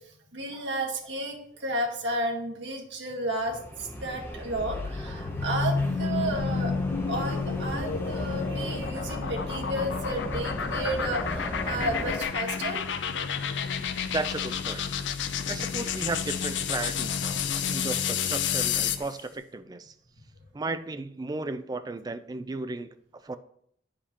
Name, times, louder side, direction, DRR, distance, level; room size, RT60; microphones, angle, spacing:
voice 1, 0.3-6.7 7.1-12.8, right 1 dB, 75° right, 1 dB, 1.5 m, -32 dB
sound 1, 3.4-12.3, equal, 15° left, 0.8 m, -37 dB
sound 2, 4.4-19.1, left 6 dB, 85° left, 0.5 m, -30 dB
voice 2, 14.1-14.8 15.5-19.9 20.5-22.9 23.2-23.4, right 3 dB, 20° right, 11 dB, 0.4 m, -34 dB
9.7 x 5.1 x 2.9 m, 0.68 s
head